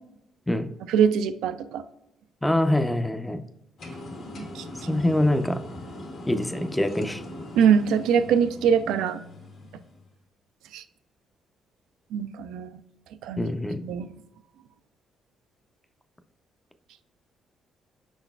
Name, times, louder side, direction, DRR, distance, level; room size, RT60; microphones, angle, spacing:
voice 1, 0.9-1.8 4.4-4.6 4.9-5.0 7.6-9.2 10.7-10.8 12.1-12.8 13.2-13.4 13.8-14.1, right 7 dB, 90° right, 10 dB, 0.3 m, -23 dB
voice 2, 2.4-3.4 4.9-5.6 6.3-7.2 13.4-13.8, left 1 dB, 10° left, 9 dB, 0.4 m, -24 dB
sound 1, 3.8-10.1, left 1 dB, 65° left, 1.4 m, -40 dB
5.3 x 3.9 x 2.3 m, 0.83 s
cardioid pair, 90°, 0 cm